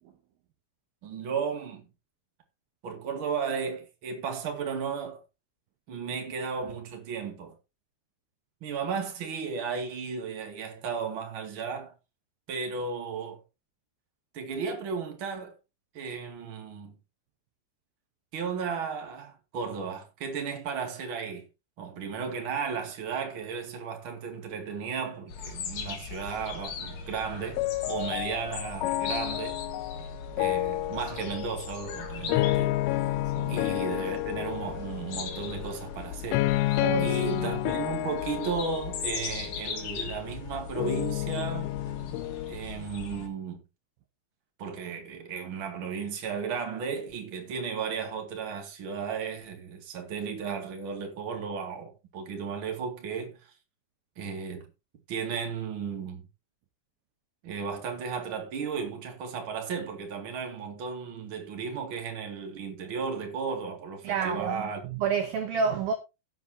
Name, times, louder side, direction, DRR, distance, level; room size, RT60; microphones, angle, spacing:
voice 1, 1.0-1.8 2.8-5.2 5.9-7.5 8.6-11.9 12.5-13.4 14.3-15.6 15.9-16.9 18.3-21.5 21.8-27.6 27.9-29.6 30.4-33.2 33.5-41.7 42.5-43.6 44.6-53.5 54.2-54.7 55.1-56.2 57.4-64.8, right 6 dB, 40° right, 2.0 m, -34 dB
sound 1, 25.3-43.3, left 5 dB, 55° left, 2.1 m, -39 dB
sound 2, 27.6-42.5, left 17 dB, 85° left, 3.1 m, -31 dB
voice 2, 36.8-37.5 64.0-65.9, right 6 dB, 75° right, 2.2 m, -30 dB
16.5 x 7.7 x 2.8 m
omnidirectional pair, 5.5 m